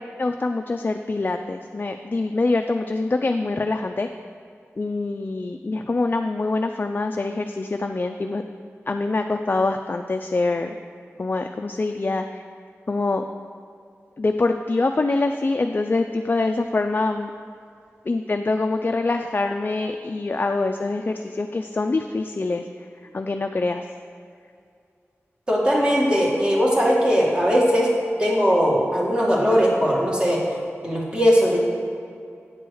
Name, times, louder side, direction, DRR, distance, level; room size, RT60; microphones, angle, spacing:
voice 1, 0.2-4.1 4.8-8.4 8.9-10.8 11.2-12.4 12.9-13.2 14.2-17.3 18.1-22.6 23.1-23.8, left 3 dB, 40° left, 5 dB, 0.3 m, -24 dB
voice 2, 25.5-27.9 28.2-30.4 30.8-31.6, equal, 20° right, -4 dB, 1.9 m, -19 dB
9.0 x 4.6 x 6.3 m, 2.4 s
wide cardioid pair, 75°, 5 cm